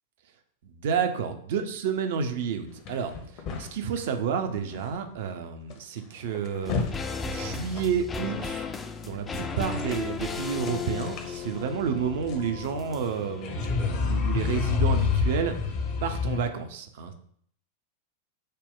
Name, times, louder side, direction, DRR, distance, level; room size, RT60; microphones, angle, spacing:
voice 1, 0.8-3.1 3.6-6.8 7.2-8.7 9.0-15.6 16.0-17.1, right 7 dB, 55° right, 8 dB, 0.5 m, -30 dB
sound 1, 2.9-4.0 4.7-4.9 5.2-5.3 5.7-5.8 6.2-7.0 7.3-7.4 7.7-8.2 9.3-10.1 10.4-16.4, left 5 dB, 40° left, 0.8 m, -29 dB
sound 2, 6.6-16.0 16.3-16.4, left 5 dB, 20° left, 0.4 m, -37 dB
6.5 x 2.2 x 3.6 m, 0.62 s
figure-of-eight pair, 90°, 0 cm